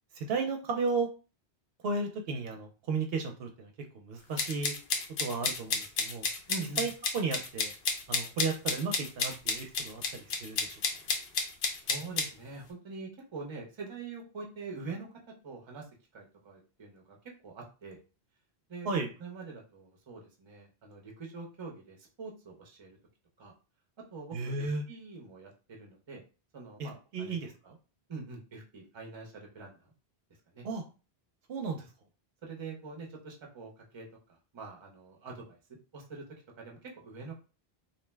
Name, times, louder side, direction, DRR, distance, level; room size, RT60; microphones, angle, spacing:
voice 1, 0.1-1.1 1.8-4.7 5.2-6.3 6.8-7.7 8.1-10.8 18.8-19.1 24.3-24.8 26.8-27.8 30.6-30.8 31.5-31.9, right 4 dB, 70° right, 3 dB, 0.8 m, -34 dB
sound 1, 4.4-12.3, left 4 dB, 65° left, 0.7 m, -31 dB
voice 2, 6.5-6.9 11.8-15.1 15.4-17.2 17.4-18.0 18.7-18.9 19.2-23.0 23.4-23.5 24.1-26.2 26.5-27.4 28.1-29.9 30.5-30.7 32.4-35.6 35.9-36.2 36.6-37.3, right 4 dB, 35° right, 0 dB, 0.6 m, -44 dB
2.7 x 2.0 x 3.2 m, 0.34 s
omnidirectional pair, 1.1 m